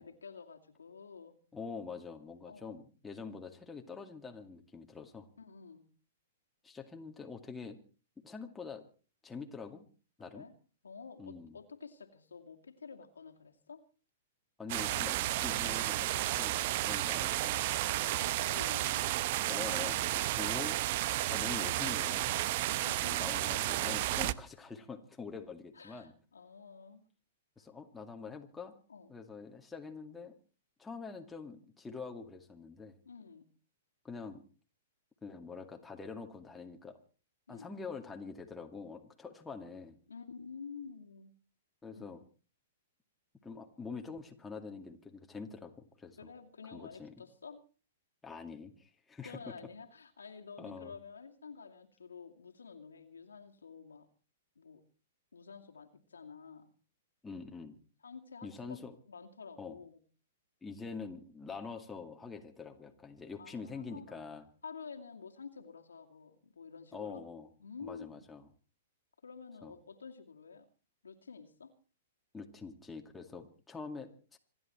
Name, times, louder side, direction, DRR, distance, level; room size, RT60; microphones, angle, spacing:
voice 1, 0.0-1.4 2.5-2.8 5.4-5.9 10.3-10.5 10.8-13.8 17.9-19.0 22.8-23.6 25.7-27.1 28.9-29.1 33.1-33.4 37.5-37.7 40.1-41.3 42.0-42.2 46.2-47.6 49.2-54.1 54.6-54.8 55.3-56.7 58.0-58.8 59.1-60.0 61.5-61.6 63.4-64.3 64.6-67.2 67.6-68.2 69.2-70.7 71.0-71.7, left 5 dB, 85° left, 3 dB, 2.5 m, -50 dB
voice 2, 1.5-5.3 6.6-7.8 8.2-8.8 9.2-9.9 10.2-10.5 11.2-11.6 14.6-17.7 19.5-20.8 21.0-22.3 22.7-26.1 27.6-28.7 29.1-30.3 30.8-33.0 34.0-34.4 35.2-37.0 37.5-40.0 41.8-42.2 43.4-46.3 46.7-47.1 48.2-49.4 50.6-50.9 57.2-57.8 58.4-58.9 59.6-59.8 60.6-64.4 66.9-67.5 67.8-68.5 69.6-69.7 72.3-74.4, left 5 dB, 10° left, 3 dB, 2.3 m, -45 dB
sound 1, 14.7-24.3, right 15 dB, 50° right, 0.7 m, -32 dB
26.5 x 11.0 x 4.5 m, 0.37 s
hypercardioid pair, 115°, 0 cm